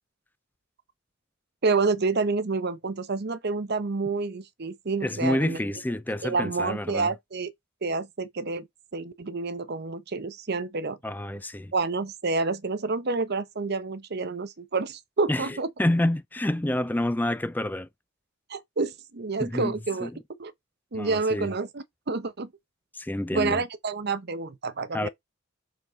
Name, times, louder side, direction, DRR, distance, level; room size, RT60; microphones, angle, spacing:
voice 1, 1.6-5.6 6.2-7.5 7.8-8.7 8.9-11.0 11.7-15.7 18.5-20.1 20.4-20.5 20.9-22.5 23.3-25.1, right 4 dB, 55° right, 0.8 m, -28 dB
voice 2, 5.0-7.1 11.0-11.7 15.3-17.9 19.4-19.7 20.0-20.1 20.9-21.5 22.9-23.6 24.9-25.1, left 1 dB, 10° left, 0.4 m, -28 dB
7.0 x 3.9 x 4.0 m
head